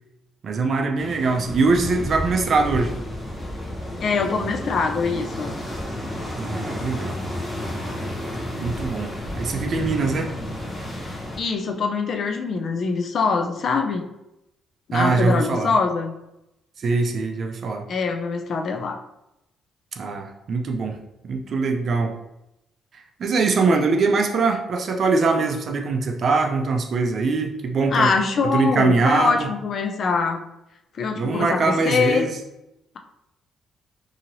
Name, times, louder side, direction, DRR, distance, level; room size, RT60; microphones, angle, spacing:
voice 1, 0.4-2.9 6.4-7.2 8.6-10.3 14.9-15.7 16.8-17.8 20.0-21.0 21.3-22.1 22.9-28.1 28.5-29.5 31.2-32.4, right 4 dB, 55° right, 4 dB, 0.4 m, -22 dB
sound 1, 1.0-11.4, left 1 dB, 25° left, 0.9 m, -31 dB
voice 2, 4.0-5.5 11.1-14.1 14.9-16.1 17.9-19.0 27.9-30.4 31.0-32.3, left 5 dB, 55° left, 5 dB, 0.4 m, -23 dB
2.8 x 2.8 x 2.6 m, 0.87 s
cardioid pair, 90°, 0 cm